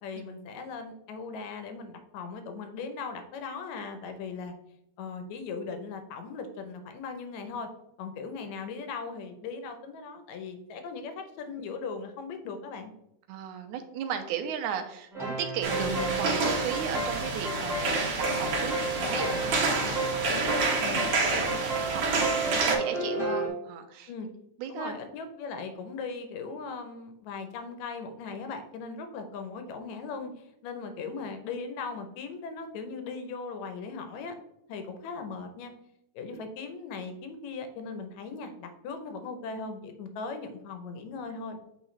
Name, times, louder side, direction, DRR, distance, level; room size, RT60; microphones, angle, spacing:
voice 1, 0.0-4.5 5.0-7.7 8.0-12.9 19.3-21.0 24.1-24.3 24.7-34.3 34.7-35.7 36.2-41.6, left 4 dB, 70° left, 7 dB, 1.9 m, -39 dB
voice 2, 13.3-19.5 20.9-21.1 21.4-24.1 24.6-24.9 36.3-36.4, right 8 dB, 80° right, 6 dB, 2.0 m, -36 dB
sound 1, 15.1-23.5, right 2 dB, ahead, 0.7 m, -33 dB
sound 2, 15.6-22.7, right 3 dB, 55° right, 1.9 m, -28 dB
8.7 x 3.6 x 3.2 m, 0.76 s
omnidirectional pair, 3.7 m